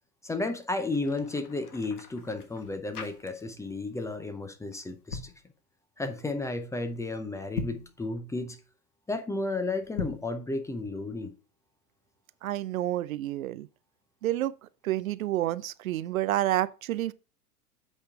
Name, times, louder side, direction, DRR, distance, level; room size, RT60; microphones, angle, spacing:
voice 1, 0.2-5.3 6.0-8.6 9.1-11.3, left 2 dB, 5° left, 0.5 m, -33 dB
sound 1, 0.8-3.7 4.0-4.3 4.9-5.4 7.4-7.9 9.8-10.3, left 4 dB, 70° left, 1.5 m, -40 dB
voice 2, 12.4-13.7 14.2-14.5 14.8-17.1, right 14 dB, 60° right, 0.5 m, -29 dB
8.2 x 5.3 x 3.5 m
figure-of-eight pair, 90°, 47 cm